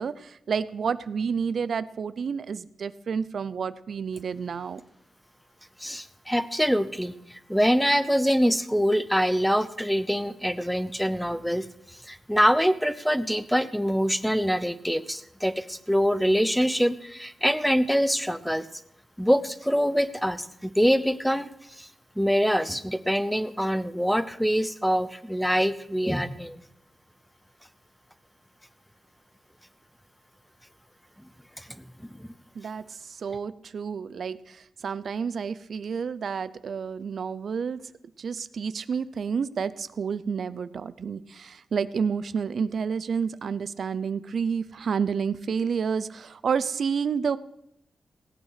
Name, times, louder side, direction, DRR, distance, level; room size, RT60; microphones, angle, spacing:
voice 1, 0.0-4.8 32.6-37.8 38.2-47.4, right 6 dB, 60° right, 15 dB, 0.5 m, -30 dB
voice 2, 5.8-18.7 19.2-21.9 22.2-26.6 31.6-32.3, equal, ahead, 14 dB, 0.6 m, -25 dB
17.0 x 9.1 x 6.7 m, 0.78 s
wide cardioid pair, 130°, 0 cm